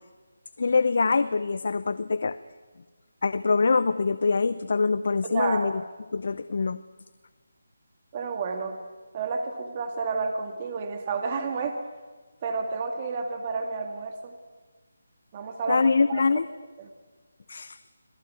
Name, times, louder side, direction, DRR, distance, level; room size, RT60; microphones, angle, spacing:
voice 1, 0.6-2.4 3.2-5.7 6.1-6.8 15.7-16.5 17.5-17.8, left 4 dB, 55° left, 14 dB, 0.7 m, -24 dB
voice 2, 5.3-5.7 8.1-8.8 9.1-11.8 12.4-14.3 15.3-16.2 16.8-16.9, right 4 dB, 25° right, 5 dB, 1.9 m, -30 dB
26.5 x 18.0 x 9.4 m, 1.3 s
figure-of-eight pair, 165°, 0 cm